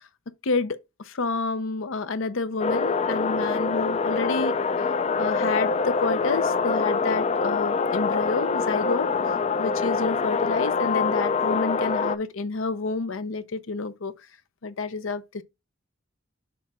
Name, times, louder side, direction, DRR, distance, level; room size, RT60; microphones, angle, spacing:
voice 1, 0.4-4.9 5.2-9.1 9.6-14.1 14.6-15.4, left 4 dB, 75° left, 0.7 m, -29 dB
sound 1, 2.6-12.2, left 4 dB, 35° left, 0.4 m, -25 dB
7.0 x 4.2 x 3.6 m
head